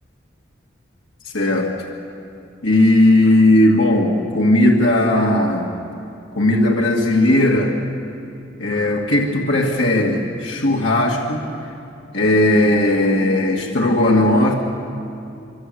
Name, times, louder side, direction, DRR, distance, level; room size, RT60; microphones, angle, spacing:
voice 1, 1.2-1.8 2.6-5.8 6.4-7.8 8.6-11.5 12.1-14.5, left 1 dB, 75° left, -2 dB, 2.4 m, -16 dB
26.0 x 25.0 x 7.9 m, 2.6 s
head